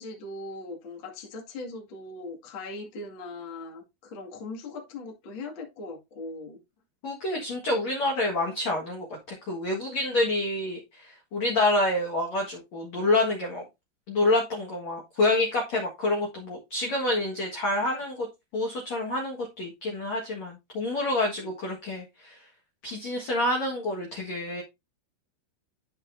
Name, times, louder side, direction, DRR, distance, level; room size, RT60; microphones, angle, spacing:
voice 1, 0.0-6.6 21.4-21.5, left 2 dB, 55° left, 1.4 m, -40 dB
voice 2, 7.0-13.6 14.1-18.3 18.5-22.4 22.8-24.6, left 2 dB, 70° left, 1.6 m, -28 dB
12.5 x 5.3 x 2.6 m
omnidirectional pair, 5.9 m